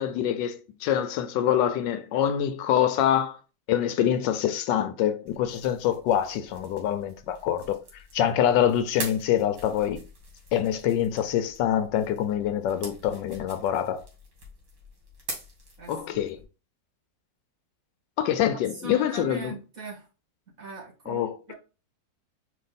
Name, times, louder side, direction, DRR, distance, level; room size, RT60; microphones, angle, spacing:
voice 1, 0.0-3.4 3.7-7.8 8.1-10.0 10.5-14.0 15.9-16.4 18.2-19.5 21.1-21.5, left 10 dB, 80° left, 1.2 m, -25 dB
sound 1, 5.3-16.4, right 2 dB, 65° right, 2.1 m, -44 dB
voice 2, 15.8-16.3 18.5-20.1 20.6-21.5, right 4 dB, 50° right, 2.1 m, -41 dB
4.6 x 2.6 x 4.0 m
omnidirectional pair, 2.0 m